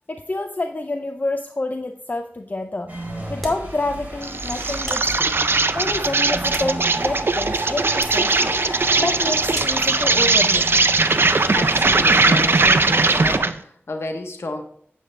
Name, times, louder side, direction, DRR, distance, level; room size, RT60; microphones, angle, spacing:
voice 1, 0.1-2.9 3.3-5.3 5.7-8.6 9.0-10.7, left 2 dB, 40° left, 6 dB, 0.5 m, -28 dB
sound 1, 2.9-13.4, right 1 dB, 40° right, 3.2 m, -32 dB
sound 2, 3.4-3.7 4.8-5.2 6.2-7.1 8.0-8.3 9.5-9.9, equal, ahead, 2.6 m, -36 dB
Insect, 4.2-13.6, right 3 dB, 60° right, 0.5 m, -19 dB
voice 2, 11.5-14.6, left 2 dB, 75° left, 4 dB, 0.9 m, -31 dB
8.9 x 7.6 x 3.2 m, 0.64 s
wide cardioid pair, 75°, 4 cm